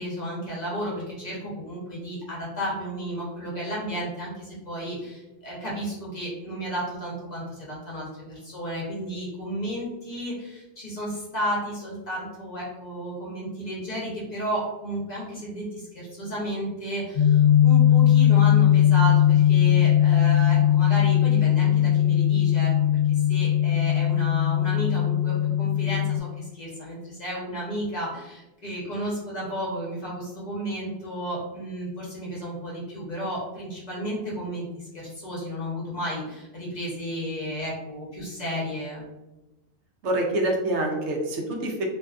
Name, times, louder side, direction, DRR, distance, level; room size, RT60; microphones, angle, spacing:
voice 1, 0.0-22.7 23.1-39.1, equal, 40° left, -5 dB, 0.8 m, -33 dB
sound 1, 17.2-26.2, left 11 dB, 70° left, 0.8 m, -19 dB
voice 2, 40.0-41.8, right 1 dB, 85° right, 1 dB, 0.9 m, -26 dB
2.6 x 2.3 x 2.4 m, 1.0 s
omnidirectional pair, 1.2 m